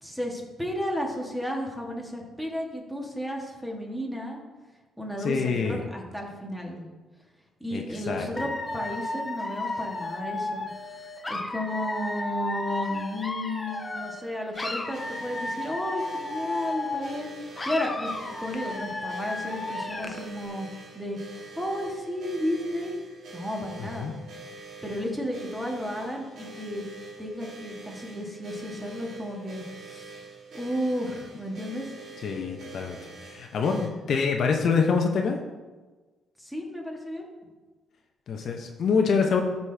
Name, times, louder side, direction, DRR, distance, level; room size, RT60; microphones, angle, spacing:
voice 1, 0.0-4.4 5.0-6.9 7.6-10.7 11.3-18.1 18.4-20.7 20.9-21.2 21.5-23.0 23.3-24.1 24.8-26.8 27.2-30.3 30.5-31.9 36.4-37.3, equal, ahead, 0 dB, 1.5 m, -33 dB
voice 2, 5.2-5.8 7.7-8.3 23.8-24.1 32.2-35.4 38.3-39.4, left 5 dB, 60° left, 3 dB, 0.7 m, -26 dB
Dog / Alarm, 8.4-14.3 14.5-17.3 17.6-20.3, left 2 dB, 20° left, 0.7 m, -33 dB
sound 1, 14.5-33.9, right 2 dB, 60° right, 2.5 m, -45 dB
12.5 x 4.1 x 3.4 m, 1.3 s
cardioid pair, 90°, 0 cm